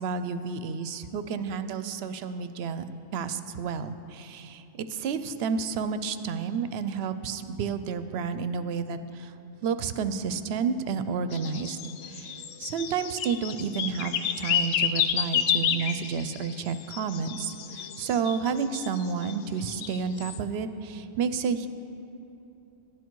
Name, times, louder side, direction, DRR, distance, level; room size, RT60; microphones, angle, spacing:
voice 1, 0.0-2.8 3.1-9.3 9.6-21.7, right 6 dB, 70° right, 11 dB, 0.8 m, -31 dB
sound 1, 11.3-19.3 19.7-20.4, left 9 dB, 80° left, 0.9 m, -30 dB
12.5 x 10.5 x 4.6 m, 2.8 s
omnidirectional pair, 1.2 m